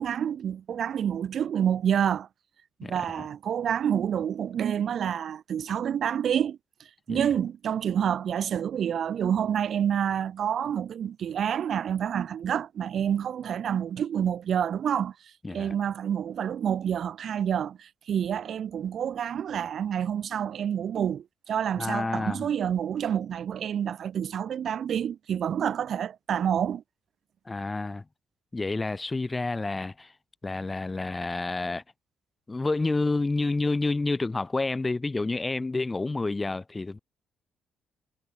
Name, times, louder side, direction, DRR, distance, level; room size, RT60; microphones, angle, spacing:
voice 1, 0.0-2.3 2.8-6.6 7.1-15.1 15.5-26.8, right 9 dB, 60° right, 2.4 m, -28 dB
voice 2, 2.8-3.2 7.1-7.2 15.4-15.8 21.8-22.5 27.4-28.0 28.5-30.1 30.4-31.8 32.5-37.0, left 3 dB, 20° left, 1.0 m, -29 dB
cardioid pair, 90°, 0 cm